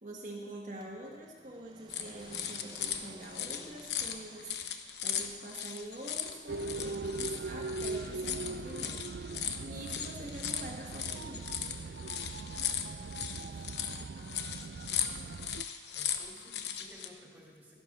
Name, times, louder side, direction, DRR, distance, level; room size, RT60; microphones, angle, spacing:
voice 1, 0.0-9.0 9.6-11.5, right 1 dB, 45° right, -2 dB, 1.4 m, -45 dB
sound 1, 0.8-5.2, right 2 dB, 25° right, 0.7 m, -55 dB
sound 2, 1.9-17.1, left 9 dB, 80° left, 0.9 m, -38 dB
sound 3, 6.5-15.6, right 3 dB, 65° right, 0.4 m, -40 dB
voice 2, 12.8-14.6 15.9-17.7, equal, 10° right, -3 dB, 2.5 m, -57 dB
12.5 x 12.0 x 6.0 m, 1.5 s
head